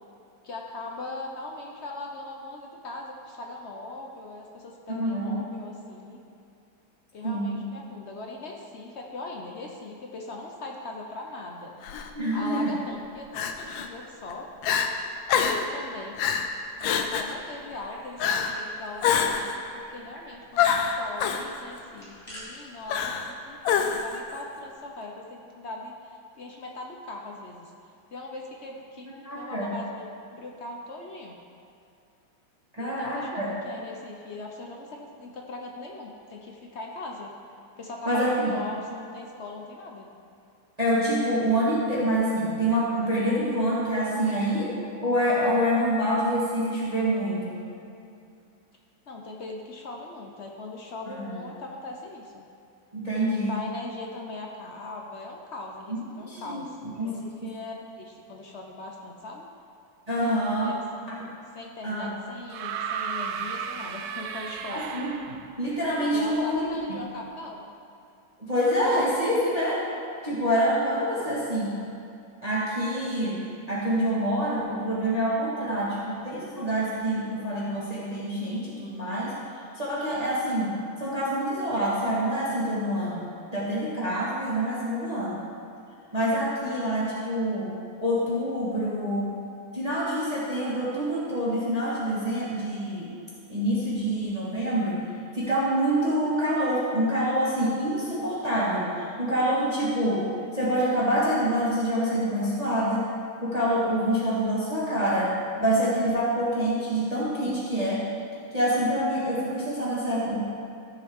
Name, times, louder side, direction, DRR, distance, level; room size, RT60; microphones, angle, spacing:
voice 1, 0.4-6.2 7.1-11.8 12.3-14.5 15.4-16.2 16.8-27.7 28.1-29.1 29.3-30.1 30.3-31.4 32.8-37.3 37.8-40.1 49.1-52.4 53.2-59.5 60.6-60.8 61.5-64.9 66.1-67.6, left 2 dB, 60° left, 0 dB, 0.7 m, -40 dB
voice 2, 5.0-5.4 7.2-7.6 12.1-12.7 29.2-29.8 32.8-33.5 38.0-38.5 40.8-44.8 45.0-47.6 51.2-51.4 52.9-53.5 55.9-57.2 60.1-60.7 61.1-61.2 61.8-62.1 64.7-66.6 68.4-69.8 70.2-71.8 72.4-73.4 73.7-79.3 79.7-83.3 83.5-85.4 86.1-87.7 88.0-89.3 89.7-93.1 93.5-95.1 95.3-100.3 100.5-103.1 103.4-108.0 108.5-110.4, equal, 20° right, -8 dB, 1.5 m, -26 dB
Crying sobbing, 11.8-12.1 13.3-13.9 14.3-14.4 14.6-14.9 15.3-15.7 16.2-16.5 16.8-17.3 18.2-18.6 19.0-19.6 20.6-21.4 22.9-23.3 23.6-24.2, left 7 dB, 80° left, 1.4 m, -25 dB
sound 1, 17.7-18.7 18.9-19.0 19.3-19.8 20.1-20.3 20.6-20.8 21.7-22.4, equal, 20° left, 2.3 m, -48 dB
sound 2, 62.5-65.6 66.8-66.9, right 7 dB, 70° right, 0.9 m, -34 dB
14.0 x 6.6 x 3.6 m, 2.6 s
omnidirectional pair, 2.1 m